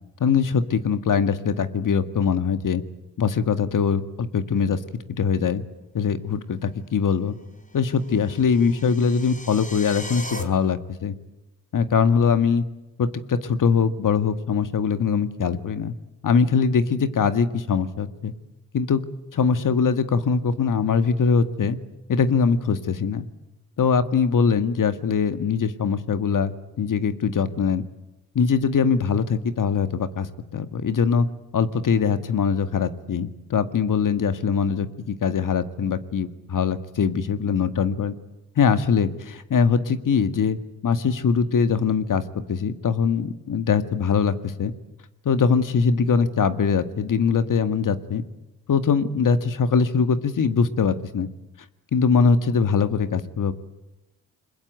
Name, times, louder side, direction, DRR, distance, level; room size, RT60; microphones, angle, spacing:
voice 1, 0.2-2.8 3.2-4.8 5.2-5.6 5.9-7.4 7.7-11.1 11.7-12.6 13.0-15.9 16.2-18.3 18.7-19.0 19.3-21.8 22.1-23.3 23.8-27.8 28.4-30.3 30.5-31.3 31.5-38.1 38.6-42.2 42.5-44.7 45.3-48.2 48.7-51.3 51.9-53.5, left 6 dB, 60° left, 11 dB, 2.0 m, -22 dB
sound 1, 7.9-10.4, left 1 dB, 20° left, 4.0 m, -38 dB
29.0 x 21.5 x 9.1 m, 0.99 s
supercardioid pair, 55°, 36 cm